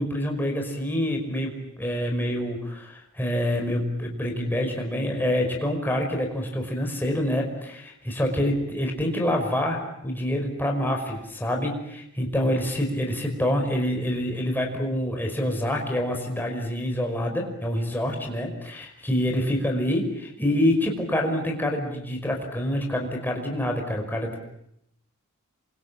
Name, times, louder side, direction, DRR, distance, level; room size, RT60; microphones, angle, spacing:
voice 1, 0.0-24.5, left 1 dB, 10° left, 1 dB, 5.4 m, -26 dB
28.0 x 24.5 x 8.7 m, 0.78 s
head